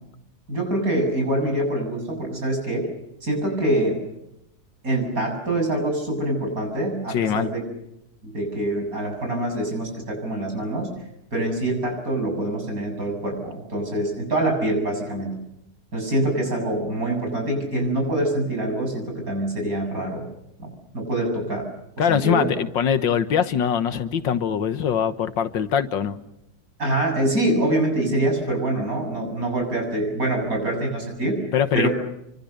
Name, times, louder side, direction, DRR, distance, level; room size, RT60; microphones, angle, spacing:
voice 1, 0.5-2.9 3.2-4.0 4.8-7.6 8.2-10.9 11.3-15.3 15.9-20.3 20.6-21.7 22.0-22.5 26.8-31.4 31.7-31.9, right 1 dB, 50° right, 3 dB, 8.0 m, -25 dB
voice 2, 7.1-7.5 22.0-26.2 31.5-31.9, left 8 dB, 80° left, 11 dB, 2.0 m, -22 dB
29.5 x 25.0 x 6.8 m, 0.82 s
omnidirectional pair, 2.0 m